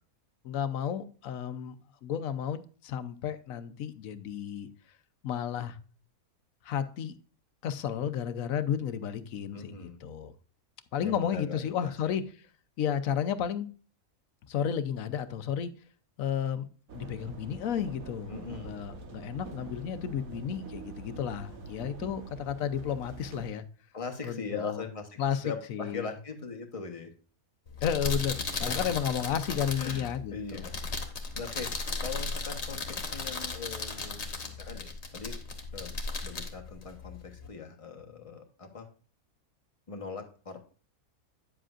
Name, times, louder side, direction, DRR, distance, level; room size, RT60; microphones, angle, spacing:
voice 1, 0.4-1.7 2.0-4.7 5.2-5.8 6.6-7.1 7.6-10.3 10.9-12.2 12.8-13.7 14.5-15.7 16.2-16.7 16.9-18.3 18.6-23.6 24.2-24.8 25.2-25.4 25.7-26.1 27.8-30.7, left 8 dB, 70° left, 12 dB, 1.1 m, -32 dB
voice 2, 9.5-10.0 11.0-12.2 18.3-18.8 23.9-25.2 25.4-27.1 28.6-28.8 29.8-30.7 31.3-31.7 32.0-35.4 35.7-35.9 36.2-38.9 39.9-40.6, left 5 dB, 25° left, 4 dB, 1.1 m, -40 dB
sound 1, 16.9-23.5, right 4 dB, 65° right, 1.6 m, -45 dB
sound 2, 27.7-37.5, left 3 dB, 50° left, 1.6 m, -36 dB
9.9 x 7.5 x 2.5 m, 0.39 s
omnidirectional pair, 1.6 m